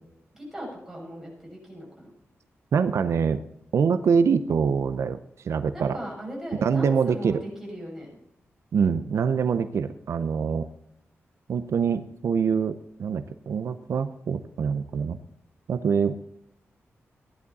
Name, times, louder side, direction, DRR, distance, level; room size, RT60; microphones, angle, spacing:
voice 1, 0.3-2.1 5.7-8.1, equal, 5° right, -3 dB, 6.5 m, -38 dB
voice 2, 2.7-3.4 3.7-6.0 6.5-7.4 8.7-10.7 11.5-15.2 15.7-16.1, right 6 dB, 75° right, 11 dB, 0.6 m, -24 dB
15.5 x 11.0 x 4.1 m, 0.77 s
wide cardioid pair, 145°, 5 cm